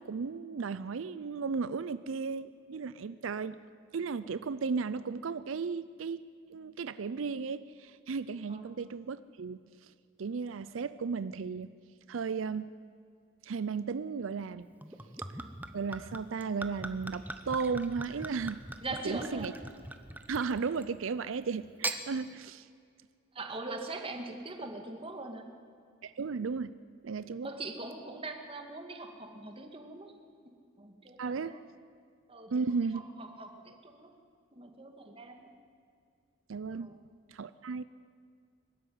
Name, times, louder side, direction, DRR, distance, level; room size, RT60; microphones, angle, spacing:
voice 1, 0.0-3.6 3.9-6.2 6.5-9.9 10.2-11.7 12.1-12.7 13.4-14.7 15.7-18.6 19.0-19.5 20.3-22.7 26.0-26.7 27.0-27.5 31.2-31.6 32.5-33.0 36.5-36.9 37.3-37.8, right 5 dB, 90° right, 15 dB, 0.5 m, -35 dB
Gurgling / Chink clink / Liquid, 14.8-21.0 21.6-22.0, right 2 dB, 10° right, 1.0 m, -41 dB
voice 2, 18.8-19.5 23.3-25.5 27.4-30.1 30.8-31.8 32.3-32.5 32.9-34.1 34.5-35.5 36.8-37.0, right 2 dB, 30° right, 4 dB, 2.1 m, -42 dB
22.5 x 13.0 x 9.5 m, 2.3 s
head